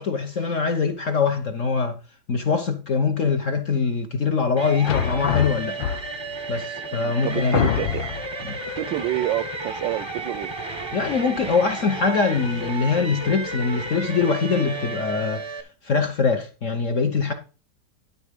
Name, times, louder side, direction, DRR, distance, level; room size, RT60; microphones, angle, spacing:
voice 1, 0.0-2.0 2.3-5.8 6.5-7.7 8.5-8.6 10.9-15.4 15.8-17.3, left 5 dB, 50° left, 1.0 m, -23 dB
sound 1, 4.6-15.6, right 3 dB, 20° right, 0.7 m, -33 dB
sound 2, 4.8-6.4 7.0-7.1 7.5-8.4, left 10 dB, 70° left, 1.4 m, -25 dB
voice 2, 6.9-8.0 8.8-10.5, right 15 dB, 75° right, 1.1 m, -28 dB
12.0 x 4.2 x 5.2 m
omnidirectional pair, 2.3 m